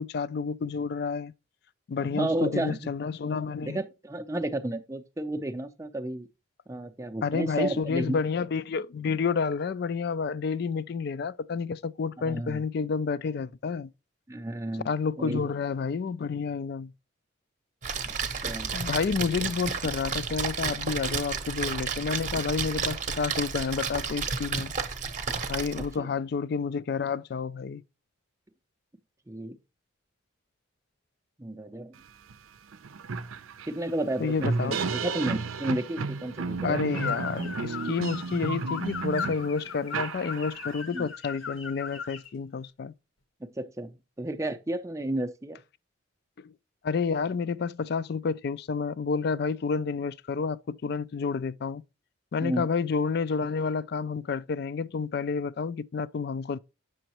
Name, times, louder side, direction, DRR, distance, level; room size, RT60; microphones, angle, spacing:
voice 1, 0.0-1.3 1.9-3.8 7.2-13.9 14.8-16.9 18.7-24.7 25.5-27.8 34.2-34.8 36.6-42.9 46.4-46.5 46.8-51.8 52.3-56.6, left 5 dB, 50° left, 0.3 m, -30 dB
voice 2, 2.0-2.9 3.6-6.3 6.7-8.2 12.2-12.6 14.3-14.9 15.2-15.5 18.4-18.8 25.8-26.1 29.3-29.6 31.4-31.9 33.7-36.8 40.9-41.1 43.4-45.6 52.4-52.7, right 1 dB, 15° right, 0.5 m, -32 dB
Splash splatter, 17.8-26.0, right 5 dB, 35° right, 0.8 m, -32 dB
sound 1, 32.3-32.4 32.7-40.8, right 4 dB, 85° right, 0.6 m, -33 dB
sound 2, 36.9-42.3, left 6 dB, 80° left, 1.1 m, -37 dB
7.8 x 6.2 x 2.9 m
head